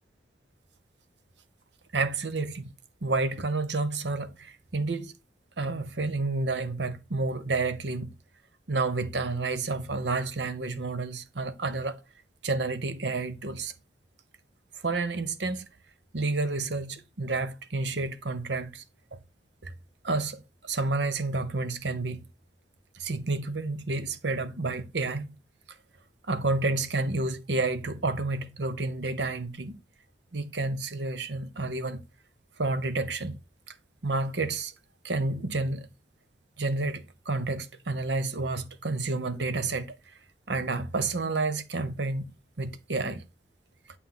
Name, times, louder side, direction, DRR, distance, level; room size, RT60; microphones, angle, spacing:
voice 1, 1.9-2.7 3.0-5.1 5.6-8.1 8.7-12.0 12.4-13.7 14.8-15.6 16.1-18.8 19.6-19.7 20.0-22.2 22.9-25.3 26.3-29.7 30.3-32.0 32.6-33.3 33.7-33.8 34.0-34.7 35.0-35.9 36.6-39.9 40.5-43.2, right 3 dB, 85° right, 1.0 m, -30 dB
9.1 x 4.5 x 3.8 m
head